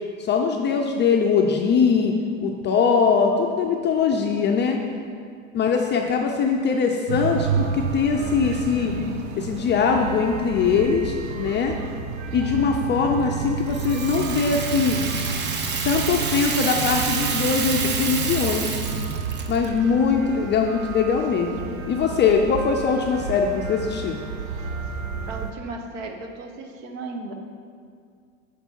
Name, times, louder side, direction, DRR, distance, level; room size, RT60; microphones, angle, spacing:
voice 1, 0.2-2.1 2.4-4.8 5.5-8.9 9.4-11.7 12.3-15.0 15.8-18.8 19.5-24.2, left 5 dB, 25° left, 2 dB, 0.4 m, -22 dB
voice 2, 4.3-5.3 25.3-27.3, right 3 dB, 60° right, 4 dB, 1.0 m, -37 dB
sound 1, 7.1-25.5, right 6 dB, 85° right, 0.6 m, -31 dB
Rattle (instrument), 13.7-19.7, right 5 dB, 25° right, 0.6 m, -28 dB
6.7 x 4.6 x 4.4 m, 2.2 s
hypercardioid pair, 90°, 41 cm